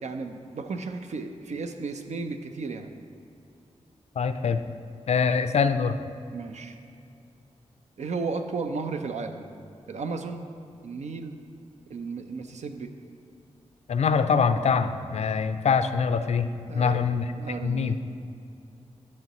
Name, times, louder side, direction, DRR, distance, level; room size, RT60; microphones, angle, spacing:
voice 1, 0.0-2.9 6.3-6.8 8.0-9.5 9.9-10.4 10.8-11.4 11.9-12.9 16.7-17.1 17.4-18.0, right 4 dB, 75° right, 6 dB, 0.5 m, -34 dB
voice 2, 4.2-4.6 5.1-6.0 13.9-17.3 17.6-18.0, left 6 dB, 65° left, 10 dB, 0.4 m, -24 dB
10.5 x 6.9 x 3.0 m, 2.5 s
cardioid pair, 65°, 12 cm